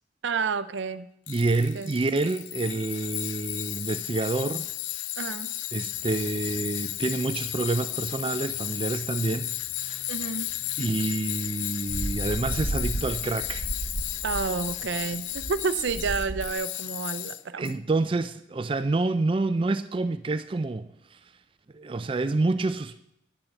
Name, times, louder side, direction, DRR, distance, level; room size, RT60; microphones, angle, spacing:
voice 1, 0.2-1.1 1.7-1.9 5.2-5.5 10.1-10.5 14.2-17.7, right 5 dB, 80° right, 0.5 m, -30 dB
Tools, 1.3-17.7, left 15 dB, 80° left, 0.5 m, -34 dB
voice 2, 1.3-4.6 5.7-9.5 9.8-10.0 10.8-13.7 17.6-21.2 21.7-23.0, right 3 dB, 30° right, 0.4 m, -28 dB
sound 1, 5.8-11.1, left 2 dB, 25° left, 3.5 m, -52 dB
sound 2, 11.4-16.5, right 1 dB, 50° right, 0.8 m, -33 dB
10.0 x 7.3 x 8.1 m
head